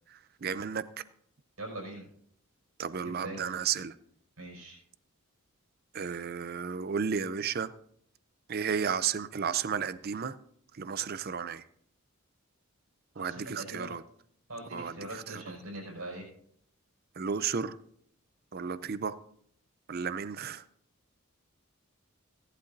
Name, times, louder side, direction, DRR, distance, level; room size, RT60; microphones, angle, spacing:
voice 1, 0.4-0.8 2.8-3.9 5.9-7.7 8.5-10.4 10.8-11.6 13.2-14.0 14.7-15.6 17.2-17.7 18.5-19.2 19.9-20.6, right 6 dB, 45° right, 14 dB, 0.5 m, -33 dB
voice 2, 1.6-2.0 3.0-3.4 4.4-4.8 13.2-13.9 14.5-16.3, right 1 dB, 85° right, 0 dB, 5.3 m, -42 dB
17.0 x 11.5 x 2.6 m, 0.66 s
head